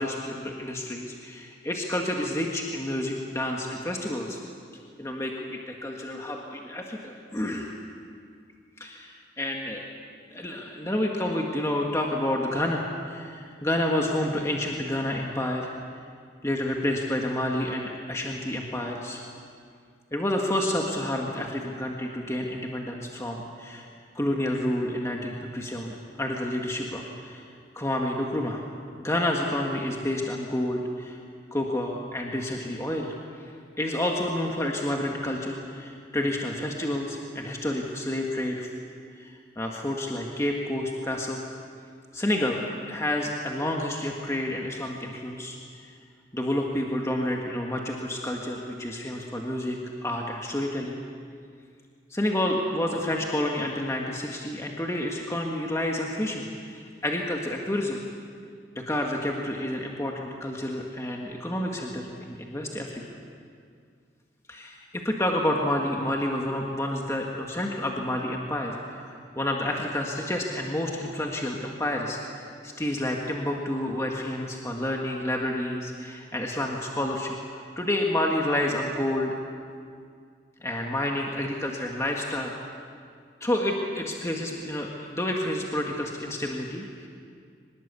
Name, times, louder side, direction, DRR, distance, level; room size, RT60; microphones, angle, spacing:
voice 1, 0.0-4.4 5.0-7.8 8.8-9.8 10.3-15.7 16.4-19.2 20.1-23.9 24.1-27.4 27.7-28.6 29.0-31.2 31.5-33.1 33.4-33.5 33.8-38.7 39.2-41.4 42.1-45.9 46.3-51.0 52.1-58.0 58.8-63.0 64.5-77.3 77.8-79.3 80.6-82.5 83.4-87.1, left 1 dB, 15° left, 0 dB, 1.7 m, -29 dB
24.0 x 20.0 x 8.3 m, 2.2 s
head